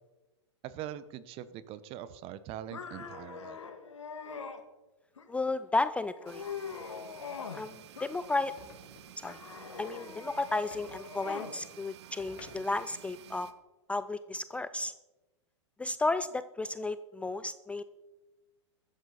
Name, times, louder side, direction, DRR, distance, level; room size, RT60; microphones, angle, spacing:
voice 1, 0.6-3.6, right 11 dB, 40° right, 15 dB, 1.0 m, -42 dB
sound 1, 2.7-4.6 5.2-5.7 6.1-7.7 8.0-8.7 9.2-11.6, left 6 dB, 85° left, 1.9 m, -43 dB
voice 2, 5.3-6.4 7.5-8.5 9.2-9.4 9.8-13.5 13.9-14.9 15.8-17.8, left 2 dB, 10° left, 13 dB, 0.4 m, -33 dB
sound 2, 6.3-13.5, right 11 dB, 65° right, 1.3 m, -52 dB
sound 3, 8.6-9.3 10.7-11.1 12.2-13.1, left 5 dB, 45° left, 2.5 m, -53 dB
15.5 x 13.0 x 4.1 m, 1.1 s
hypercardioid pair, 110°, 15 cm